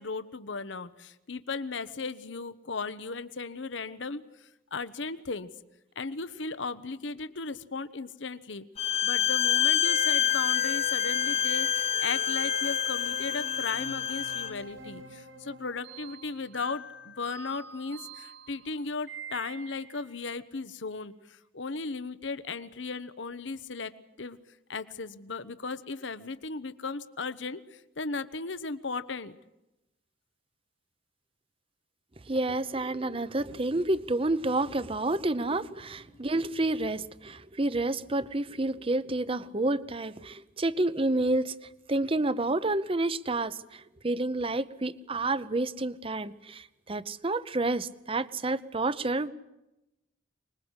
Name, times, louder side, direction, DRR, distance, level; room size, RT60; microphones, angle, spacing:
voice 1, 0.0-5.5 6.0-8.6 9.0-23.9 24.2-24.4 24.7-29.3, left 4 dB, 70° left, 13 dB, 1.0 m, -36 dB
Bowed string instrument, 8.8-14.5, left 10 dB, 30° left, 1.0 m, -27 dB
sound 1, 9.8-20.0, right 3 dB, 75° right, 6.2 m, -44 dB
voice 2, 32.3-41.6 41.9-49.3, right 2 dB, 30° right, 15 dB, 0.8 m, -29 dB
25.0 x 21.5 x 8.2 m, 0.92 s
head